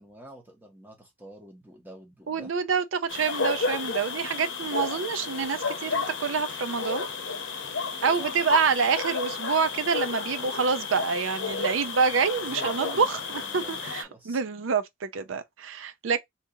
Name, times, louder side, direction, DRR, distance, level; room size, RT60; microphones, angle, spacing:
voice 1, 0.0-2.5 8.2-8.3 12.4-14.4, right 1 dB, 10° right, 1.2 m, -47 dB
voice 2, 2.3-7.1 8.0-13.2 13.5-16.2, right 5 dB, 85° right, 0.5 m, -27 dB
sound 1, 3.1-14.0, left 4 dB, 70° left, 0.8 m, -32 dB
2.9 x 2.7 x 3.7 m
head